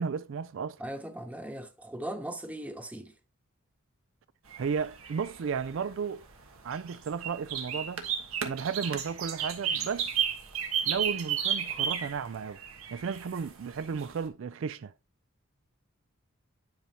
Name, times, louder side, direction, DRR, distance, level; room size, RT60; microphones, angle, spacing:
voice 1, 0.0-0.8 4.6-6.2 6.6-8.1 8.4-10.1 10.8-12.6 12.9-14.9, right 6 dB, 60° right, 0.3 m, -34 dB
voice 2, 0.8-3.1, right 1 dB, 5° right, 0.8 m, -39 dB
sound 1, 4.5-14.2, right 8 dB, 80° right, 1.3 m, -33 dB
10.5 x 5.5 x 2.9 m
head